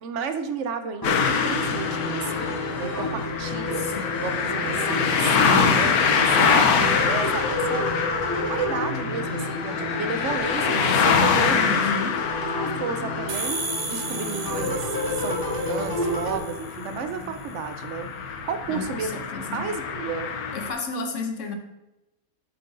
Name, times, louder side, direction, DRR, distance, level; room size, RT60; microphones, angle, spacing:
voice 1, 0.0-3.9 4.2-6.7 7.1-7.9 8.5-11.9 12.3-18.1 18.4-19.2 19.5-20.3, right 5 dB, 65° right, 8 dB, 0.9 m, -32 dB
sound 1, 1.0-20.7, left 6 dB, 85° left, 1.2 m, -25 dB
sound 2, 1.0-16.4, left 1 dB, 15° left, 1.3 m, -31 dB
voice 2, 3.8-4.3 11.5-12.3 18.7-19.6 20.5-21.6, left 4 dB, 60° left, 5 dB, 1.1 m, -32 dB
sound 3, 13.3-16.9, right 3 dB, 80° right, 1.3 m, -34 dB
7.8 x 7.5 x 2.6 m, 0.96 s
omnidirectional pair, 1.5 m